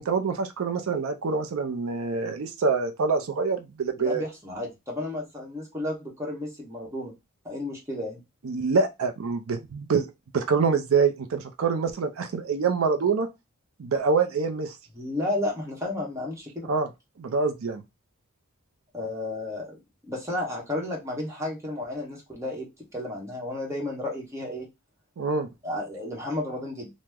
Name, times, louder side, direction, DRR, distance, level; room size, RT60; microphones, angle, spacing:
voice 1, 0.0-4.2 8.4-10.1 10.3-13.3 13.8-14.8 16.7-16.9 17.2-17.8 25.2-25.5, right 5 dB, 85° right, 0.5 m, -25 dB
voice 2, 4.0-7.1 7.4-8.2 14.9-16.7 18.9-19.8 20.1-22.7 22.9-24.7 25.6-26.9, left 1 dB, 15° right, 1.0 m, -32 dB
2.9 x 2.1 x 3.5 m
head